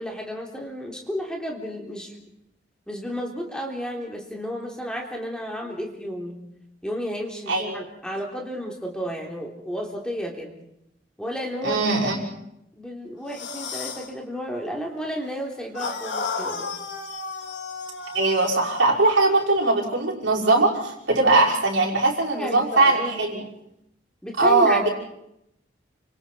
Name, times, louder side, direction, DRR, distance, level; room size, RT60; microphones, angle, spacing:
voice 1, 0.0-2.1 2.9-6.4 6.8-10.5 11.2-12.2 12.7-16.7 22.3-23.3 24.2-24.9, equal, 5° left, 0 dB, 3.6 m, -32 dB
voice 2, 11.6-12.2 18.1-23.5 24.4-24.9, right 2 dB, 80° right, -2 dB, 5.7 m, -20 dB
sound 1, 13.3-14.1 15.7-18.9, left 4 dB, 75° left, 3.2 m, -33 dB
29.5 x 26.5 x 4.6 m, 0.80 s
head